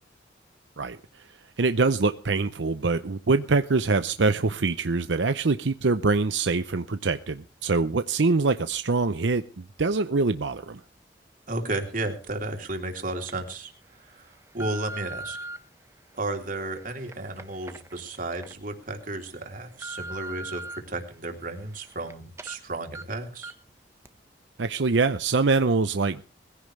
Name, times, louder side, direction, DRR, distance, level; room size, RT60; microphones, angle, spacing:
voice 1, 1.6-10.8 24.6-26.2, right 3 dB, 80° right, 10 dB, 0.7 m, -24 dB
voice 2, 11.5-13.7 14.0-15.4 16.1-23.5, right 2 dB, 50° right, 4 dB, 3.4 m, -33 dB
sound 1, 12.3-12.4 13.0-13.3 13.9-15.6 16.2-18.5 19.0-19.1 19.5-20.8 21.2-22.1 22.4-22.6 22.9-23.0 23.4-23.7 24.0-24.1, right 2 dB, 15° right, 1.3 m, -41 dB
21.5 x 16.0 x 3.3 m, 0.36 s
head